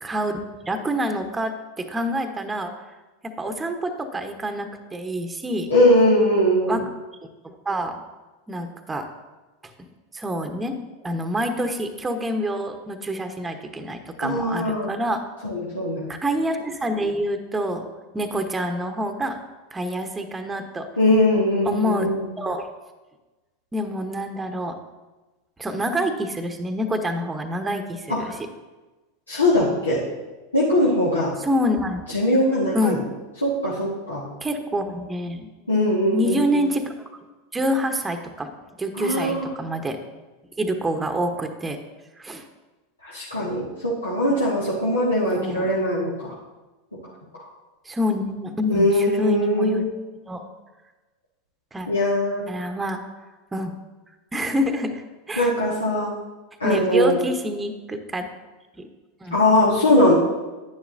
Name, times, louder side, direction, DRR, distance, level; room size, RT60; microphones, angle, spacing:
voice 1, 0.0-2.7 3.2-5.7 6.7-6.8 7.4-8.0 8.5-9.1 10.1-10.7 11.0-15.2 16.1-17.9 18.1-19.4 19.7-20.9 21.6-22.7 23.7-24.8 25.6-28.4 31.4-32.2 32.7-33.0 34.4-35.5 36.1-36.9 37.5-38.5 38.8-40.0 40.6-41.8 42.2-42.4 45.3-45.7 47.8-49.8 50.3-50.5 51.7-51.9 52.5-53.0 53.5-53.7 54.3-55.0 55.3-55.5 56.6-58.3 58.8-58.9 59.2-59.4, equal, 15° right, 6 dB, 0.9 m, -27 dB
voice 2, 5.7-6.8 14.2-14.9 15.4-16.1 21.0-22.3 28.1-28.3 29.3-30.0 30.5-31.3 32.1-33.0 33.4-34.3 35.7-36.5 39.0-39.5 43.0-46.3 47.3-47.5 48.7-49.9 51.9-52.4 55.4-56.1 56.6-57.2 59.3-60.1, left 1 dB, 90° left, -7 dB, 1.6 m, -21 dB
10.0 x 9.5 x 2.6 m, 1.2 s
figure-of-eight pair, 85°, 0 cm